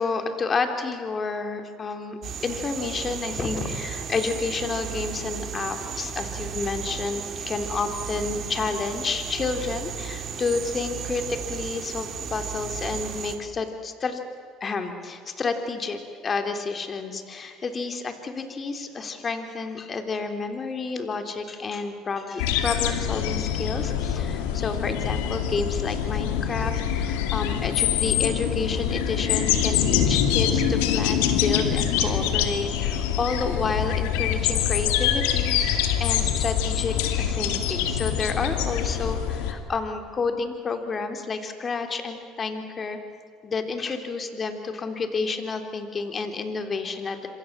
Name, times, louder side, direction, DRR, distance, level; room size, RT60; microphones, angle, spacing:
voice 1, 0.0-14.2 14.6-43.0 43.4-47.3, left 4 dB, 35° left, 6 dB, 3.4 m, -30 dB
sound 1, 2.2-13.3, right 7 dB, 45° right, 3.5 m, -34 dB
sound 2, 22.4-39.5, left 9 dB, 80° left, 2.5 m, -25 dB
27.0 x 26.0 x 7.5 m, 2.3 s
supercardioid pair, 80°, 0 cm